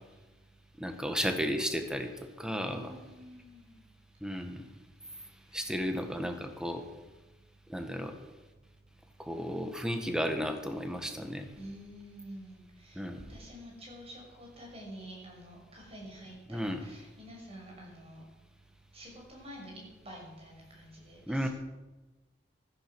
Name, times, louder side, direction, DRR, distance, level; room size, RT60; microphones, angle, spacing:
voice 1, 0.8-2.1 2.4-2.9 4.2-4.6 5.5-6.8 7.7-8.1 9.2-11.5 12.9-13.2 16.5-16.8 21.3-21.5, equal, 5° right, 5 dB, 1.6 m, -33 dB
voice 2, 2.7-3.8 5.6-5.8 11.6-13.0 13.3-18.2 18.9-21.5, equal, 35° right, -1 dB, 6.6 m, -48 dB
15.5 x 14.0 x 6.3 m, 1.1 s
head